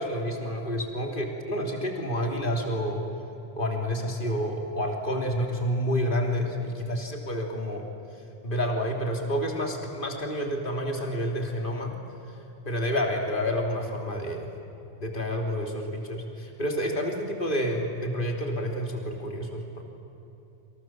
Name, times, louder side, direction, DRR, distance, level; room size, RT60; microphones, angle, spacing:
voice 1, 0.0-3.0 3.6-7.8 8.4-11.9 12.7-14.5 15.0-19.8, equal, 45° left, 2 dB, 3.5 m, -29 dB
28.5 x 27.0 x 7.6 m, 2.9 s
omnidirectional pair, 1.2 m